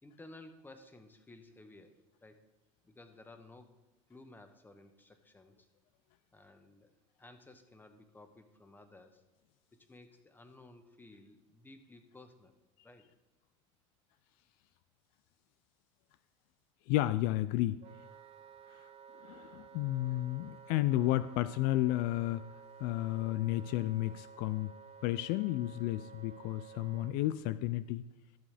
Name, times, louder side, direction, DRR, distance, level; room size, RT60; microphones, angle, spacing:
voice 1, 0.0-2.4 2.8-3.8 4.1-5.7 6.3-9.2 9.7-12.6 12.8-13.1, left 2 dB, 10° left, 8 dB, 1.2 m, -56 dB
voice 2, 16.9-17.8 19.3-22.4 22.8-24.7 25.0-28.0, left 15 dB, 65° left, 14 dB, 0.4 m, -32 dB
Wind instrument woodwind instrument, 17.8-27.2, right 6 dB, 40° right, 0.5 m, -54 dB
14.0 x 7.0 x 3.4 m, 1.2 s
supercardioid pair, 100°, 16 cm